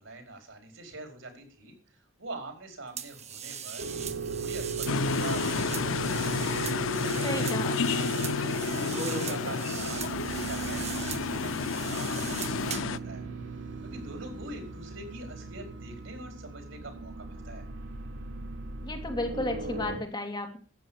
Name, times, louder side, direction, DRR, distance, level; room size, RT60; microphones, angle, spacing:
voice 1, 0.0-6.4 7.0-7.5 7.9-13.2 13.8-17.6, right 2 dB, 80° right, 5 dB, 4.7 m, -44 dB
sound 1, 3.0-13.0, right 7 dB, 35° right, 1.2 m, -40 dB
sound 2, 3.8-20.0, right 4 dB, 65° right, 3.3 m, -37 dB
sound 3, 4.9-13.0, left 5 dB, 85° left, 0.6 m, -31 dB
voice 2, 7.2-7.7 18.8-20.6, left 2 dB, 25° left, 3 dB, 2.5 m, -33 dB
13.0 x 8.6 x 7.1 m, 0.39 s
head